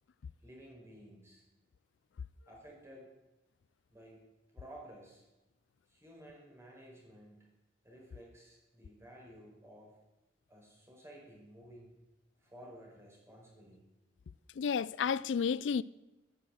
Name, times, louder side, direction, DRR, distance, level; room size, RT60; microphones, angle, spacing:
voice 1, 0.4-1.4 2.5-3.1 3.9-4.2 4.5-5.3 5.9-7.5 7.8-10.0 10.5-11.9 12.4-13.9, equal, 15° right, 5.0 m, -54 dB
voice 2, 14.6-15.8, left 6 dB, 80° left, 0.4 m, -31 dB
12.0 x 11.0 x 7.8 m
head